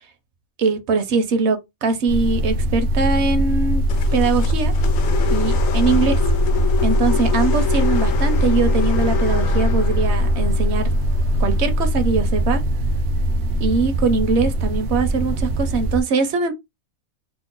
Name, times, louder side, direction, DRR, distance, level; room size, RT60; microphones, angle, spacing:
voice 1, 0.6-3.8 4.1-4.7 5.3-6.1 6.8-10.9 11.4-12.6 13.6-16.5, right 4 dB, 65° right, 0.8 m, -22 dB
sound 1, 2.1-16.0, equal, 85° right, 1.0 m, -20 dB
sound 2, 3.9-12.2, left 8 dB, 75° left, 1.0 m, -29 dB
3.0 x 2.1 x 3.7 m
omnidirectional pair, 1.4 m